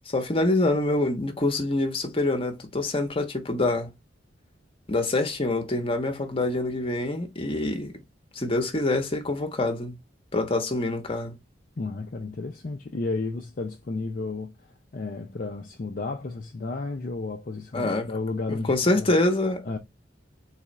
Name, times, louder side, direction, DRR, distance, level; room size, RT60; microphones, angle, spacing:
voice 1, 0.1-3.9 4.9-7.9 8.3-10.0 10.3-11.4 17.7-18.1 18.5-19.6, left 2 dB, 30° left, 1.0 m, -25 dB
voice 2, 11.8-14.7 14.9-19.1 19.7-19.8, left 3 dB, 45° left, 0.5 m, -32 dB
4.1 x 2.4 x 4.0 m
head